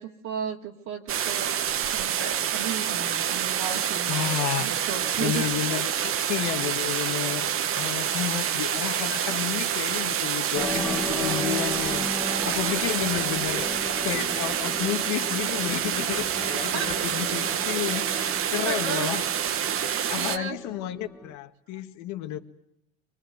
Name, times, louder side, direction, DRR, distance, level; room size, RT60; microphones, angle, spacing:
voice 1, 0.0-1.5 1.8-5.4 10.6-11.8 12.6-12.8 16.7-16.9 18.6-19.1 20.2-20.6, right 7 dB, 65° right, -1 dB, 2.7 m, -35 dB
sound 1, 1.1-20.4, right 9 dB, 45° right, 1.2 m, -27 dB
voice 2, 4.1-4.7 5.2-13.7 14.0-19.2 20.1-22.4, left 12 dB, 70° left, 5 dB, 1.9 m, -31 dB
sound 2, 10.5-21.3, left 1 dB, 5° left, 2.1 m, -36 dB
24.5 x 22.0 x 9.5 m, 0.76 s
supercardioid pair, 100°, 30 cm